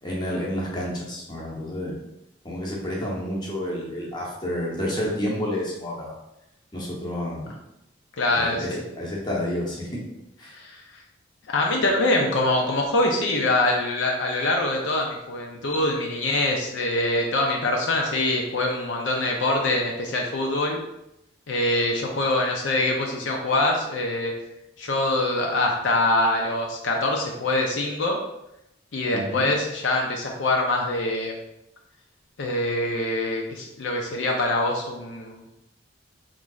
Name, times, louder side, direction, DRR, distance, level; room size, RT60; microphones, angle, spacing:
voice 1, 0.0-2.0 2.4-6.1 6.7-7.5 8.3-10.0 10.4-10.6 29.1-29.5, equal, 20° left, -4 dB, 0.7 m, -30 dB
voice 2, 8.2-8.8 10.5-11.0 11.5-20.8 21.5-24.3 24.8-28.2 28.9-31.4 32.4-35.4, left 2 dB, 65° left, 0 dB, 0.5 m, -24 dB
3.7 x 3.1 x 2.3 m, 0.86 s
head